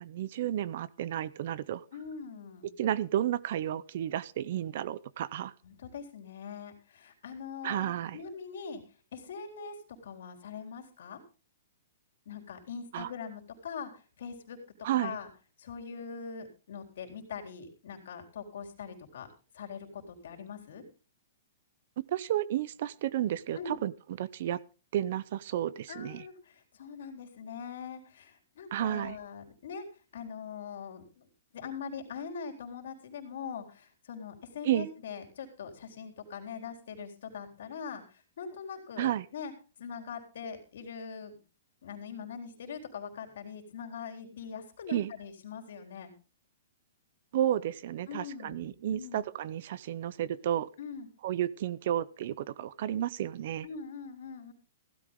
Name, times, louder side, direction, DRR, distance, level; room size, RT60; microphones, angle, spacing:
voice 1, 0.0-1.8 2.8-5.5 7.6-8.2 12.9-13.1 14.8-15.2 22.0-23.9 24.2-24.6 24.9-26.2 28.7-29.2 34.6-34.9 39.0-39.3 44.9-45.1 47.3-50.7 51.2-53.7, right 11 dB, 45° right, 20 dB, 0.6 m, -32 dB
voice 2, 1.9-2.7 5.6-8.8 9.1-11.2 12.3-14.6 15.0-15.3 15.6-19.3 19.5-20.8 23.6-23.8 25.9-29.9 30.1-31.3 31.5-39.5 39.8-41.4 41.8-46.1 48.1-49.2 50.8-51.1 53.6-54.5, left 6 dB, 60° left, 2 dB, 3.9 m, -42 dB
16.0 x 12.5 x 3.7 m, 0.35 s
hypercardioid pair, 175°, 0 cm